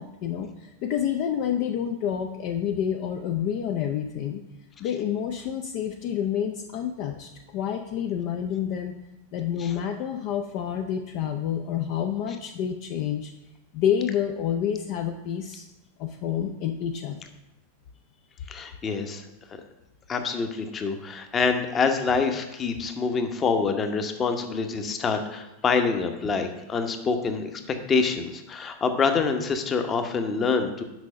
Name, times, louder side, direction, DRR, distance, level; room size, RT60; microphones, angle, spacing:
voice 1, 0.0-4.4 4.8-9.0 9.3-13.3 13.7-15.7 16.0-17.2, left 9 dB, 45° left, 4 dB, 0.5 m, -28 dB
voice 2, 18.5-19.3 20.1-30.8, left 5 dB, 25° left, 7 dB, 0.9 m, -26 dB
6.2 x 5.5 x 6.5 m, 0.97 s
figure-of-eight pair, 90°, 0 cm